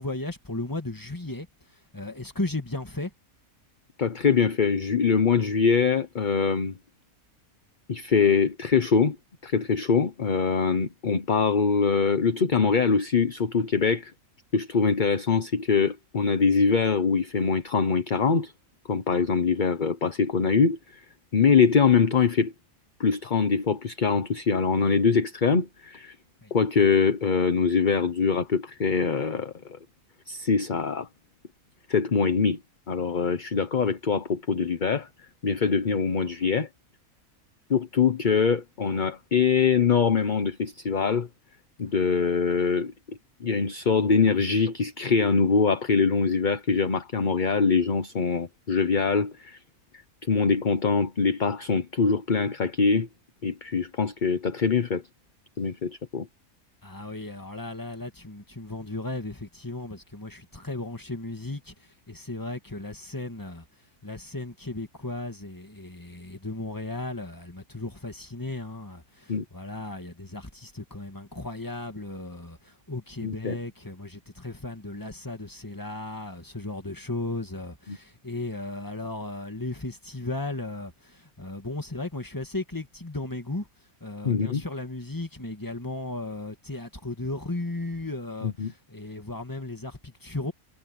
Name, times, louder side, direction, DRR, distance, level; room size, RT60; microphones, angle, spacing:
voice 1, 0.0-1.5 1.9-3.1 26.4-26.5 56.8-61.7 62.1-63.6 64.0-83.7 84.0-90.5, left 2 dB, 15° left, 2.2 m, -35 dB
voice 2, 4.0-6.7 7.9-9.2 9.4-14.1 14.5-18.5 18.9-21.0 21.3-22.5 23.0-26.1 26.5-29.8 30.3-31.1 31.9-32.6 32.9-35.1 35.4-36.7 37.7-41.3 41.8-49.6 50.3-53.1 53.4-55.0 55.6-56.3 69.3-69.4 73.2-73.6 77.9-78.0 84.2-84.6 88.4-88.7, left 5 dB, 35° left, 1.0 m, -23 dB
omnidirectional pair, 1.5 m